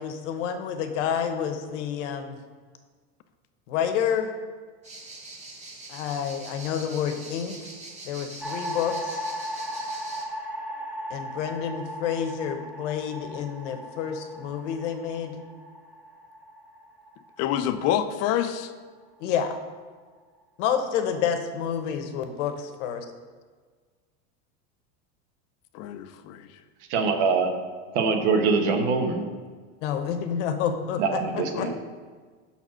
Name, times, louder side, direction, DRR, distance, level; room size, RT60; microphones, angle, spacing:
voice 1, 0.0-2.4 3.7-4.3 5.9-7.6 8.0-9.2 11.1-15.4 19.2-19.6 20.6-23.0 29.8-31.7, left 8 dB, 85° left, 7 dB, 0.9 m, -29 dB
sound 1, 4.8-10.3, right 2 dB, 20° right, 1.1 m, -43 dB
sound 2, 8.4-18.7, equal, 5° right, 0.4 m, -37 dB
voice 2, 17.4-18.7 25.7-26.6 31.5-31.7, left 10 dB, 45° left, 10 dB, 0.5 m, -27 dB
voice 3, 26.9-27.5 27.9-29.3 31.0-31.7, right 4 dB, 70° right, 5 dB, 1.1 m, -23 dB
5.8 x 4.2 x 6.1 m, 1.5 s
supercardioid pair, 135°, 35 cm